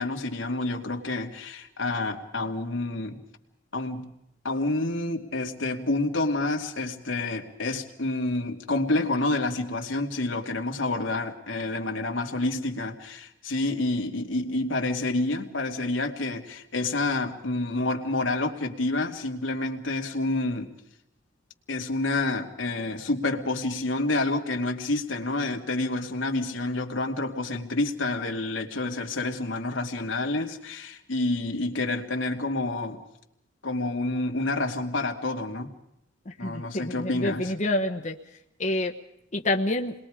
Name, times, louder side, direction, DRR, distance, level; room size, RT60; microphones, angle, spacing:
voice 1, 0.0-3.2 3.7-4.1 4.4-20.7 21.7-33.0 33.6-35.7 36.4-37.5, left 2 dB, 90° left, 2 dB, 2.5 m, -28 dB
voice 2, 36.4-38.2 38.6-38.9 39.3-39.9, left 1 dB, 40° left, 3 dB, 1.2 m, -27 dB
28.5 x 21.5 x 5.0 m, 0.80 s
head